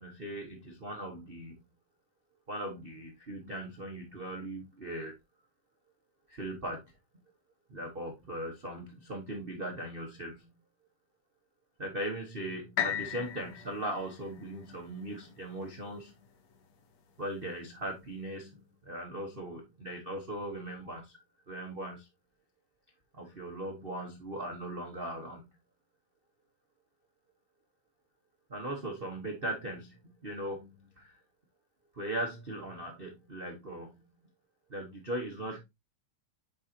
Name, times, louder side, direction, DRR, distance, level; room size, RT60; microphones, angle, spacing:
voice 1, 0.0-1.6 2.5-5.1 6.3-6.9 7.7-10.5 11.8-16.1 17.2-21.2 21.5-22.1 23.1-25.5 28.5-31.1 31.9-34.1 34.7-35.6, right 1 dB, 85° right, 0.5 m, -39 dB
sound 1, 12.8-16.7 17.3-17.4, left 10 dB, 70° left, 2.0 m, -38 dB
9.4 x 4.0 x 2.9 m
omnidirectional pair, 3.4 m